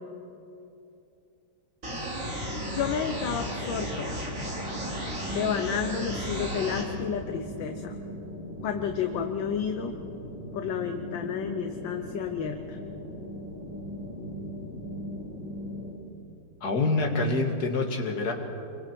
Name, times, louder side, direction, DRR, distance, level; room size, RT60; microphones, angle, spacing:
sound 1, 1.8-6.8, equal, 40° right, 3.7 m, -34 dB
sound 2, 2.3-15.9, left 1 dB, 20° right, 6.9 m, -39 dB
voice 1, 2.7-4.1 5.3-8.0 8.6-9.9 10.5-12.8, left 7 dB, 70° left, 6 dB, 1.6 m, -31 dB
voice 2, 16.6-18.3, left 3 dB, 50° left, 2 dB, 2.4 m, -26 dB
28.5 x 23.5 x 4.6 m, 2.6 s
omnidirectional pair, 2.2 m